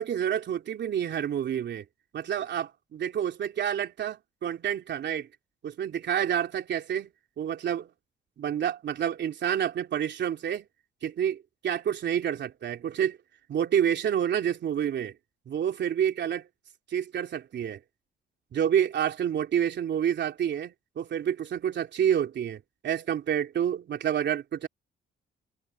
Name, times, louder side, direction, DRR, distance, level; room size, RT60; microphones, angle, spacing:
voice 1, 0.0-1.8 2.1-5.3 5.6-7.1 7.4-7.9 8.4-10.7 11.0-13.2 13.5-15.1 15.5-16.5 16.9-17.8 18.5-24.7, right 9 dB, 65° right, 3.3 m, -28 dB
cardioid pair, 90°, 20 cm